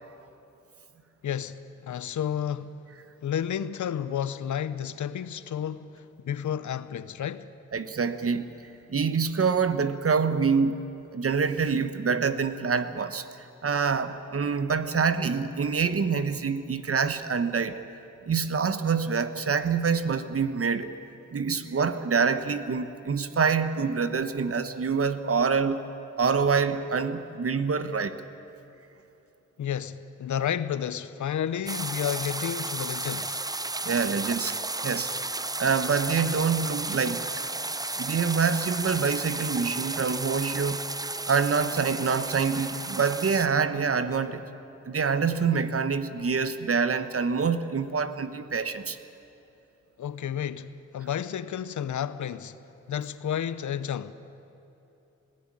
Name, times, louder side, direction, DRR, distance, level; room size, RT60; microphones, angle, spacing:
voice 1, 1.2-2.7 3.2-7.5 29.6-33.4 50.0-52.6 52.9-54.1, left 9 dB, 80° left, 0.8 m, -31 dB
voice 2, 7.7-8.5 8.9-10.9 11.1-13.3 13.6-17.8 18.3-21.0 21.3-25.8 26.2-28.2 33.8-34.6 34.8-35.1 35.6-37.3 38.0-40.8 41.2-44.5 44.8-49.0, right 5 dB, 50° right, 1.2 m, -26 dB
sound 1, 31.7-43.5, right 2 dB, 15° right, 0.6 m, -33 dB
19.0 x 15.5 x 9.9 m
cardioid pair, 70°, 29 cm